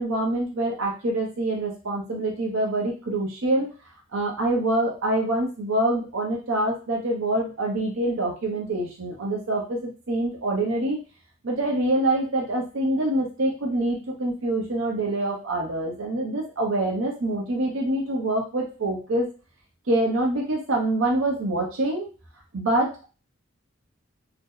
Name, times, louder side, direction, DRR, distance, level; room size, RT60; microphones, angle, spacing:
voice 1, 0.0-3.7 4.1-11.0 11.4-19.3 19.9-22.1 22.5-23.0, right 1 dB, 80° right, -1 dB, 0.7 m, -25 dB
2.7 x 2.0 x 3.7 m, 0.34 s
head